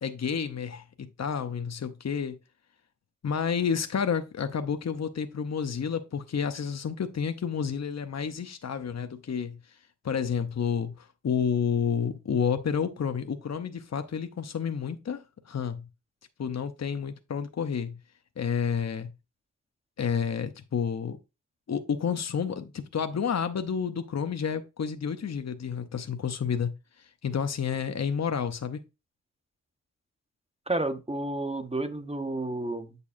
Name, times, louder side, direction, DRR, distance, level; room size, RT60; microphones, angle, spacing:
voice 1, 0.0-2.4 3.2-9.6 10.0-15.9 16.4-18.0 18.4-19.1 20.0-21.2 21.7-28.8, left 7 dB, 65° left, 0.8 m, -30 dB
voice 2, 30.7-33.0, right 2 dB, 20° right, 1.0 m, -31 dB
8.2 x 6.8 x 2.6 m
cardioid pair, 50°, 29 cm